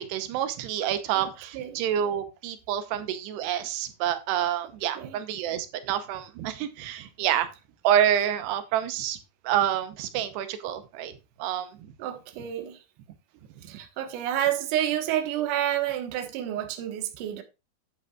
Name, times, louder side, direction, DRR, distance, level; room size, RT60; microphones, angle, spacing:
voice 1, 0.0-7.5 7.8-9.2 9.4-11.1 11.4-11.7, right 10 dB, 90° right, 3.0 m, -27 dB
voice 2, 12.0-12.8 13.6-17.4, right 11 dB, 65° right, 2.4 m, -29 dB
10.5 x 8.6 x 2.4 m
omnidirectional pair, 4.8 m